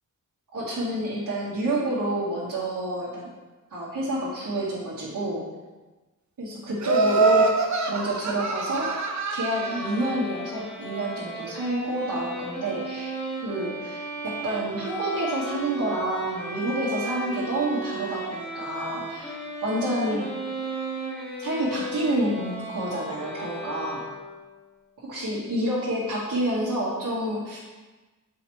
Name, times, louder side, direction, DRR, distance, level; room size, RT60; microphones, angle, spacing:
voice 1, 0.5-3.3 3.7-5.4 6.4-7.5 7.9-9.0 9.3-13.1 13.4-19.3 19.6-20.3 21.4-24.0 25.0-27.6, right 1 dB, 80° right, -11 dB, 1.8 m, -28 dB
Laughter, 6.8-10.0, right 3 dB, 60° right, 0.7 m, -24 dB
sound 1, 9.5-24.5, right 2 dB, 5° left, 2.0 m, -35 dB
7.0 x 5.0 x 3.2 m, 1.2 s
wide cardioid pair, 80°, 33 cm